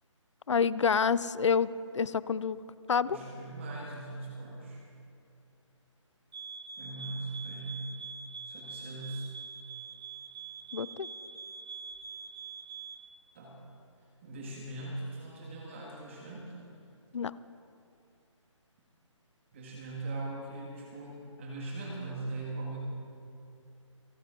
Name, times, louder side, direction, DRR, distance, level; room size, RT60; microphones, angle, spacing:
voice 1, 0.5-2.6 2.9-3.2 10.7-11.1 17.1-17.3, left 6 dB, 65° left, 18 dB, 0.5 m, -28 dB
voice 2, 3.0-4.8 6.8-8.0 8.4-9.3 13.3-13.6 14.2-16.5 19.5-22.8, right 2 dB, 25° right, -2 dB, 1.7 m, -40 dB
sound 1, 6.3-13.1, right 6 dB, 45° right, 1.1 m, -44 dB
29.0 x 9.8 x 3.8 m, 2.5 s
hypercardioid pair, 170°, 16 cm